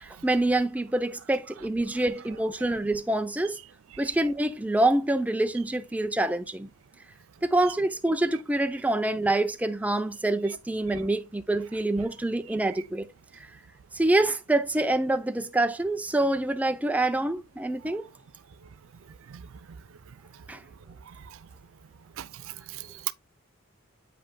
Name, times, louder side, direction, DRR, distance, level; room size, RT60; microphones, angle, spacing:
voice 1, 0.0-3.6 4.0-6.7 7.4-13.1 14.0-18.0 20.5-20.6, right 2 dB, 5° right, 0.5 m, -26 dB
voice 2, 21.1-21.4 22.2-23.1, right 13 dB, 65° right, 0.4 m, -39 dB
8.6 x 5.4 x 2.2 m
head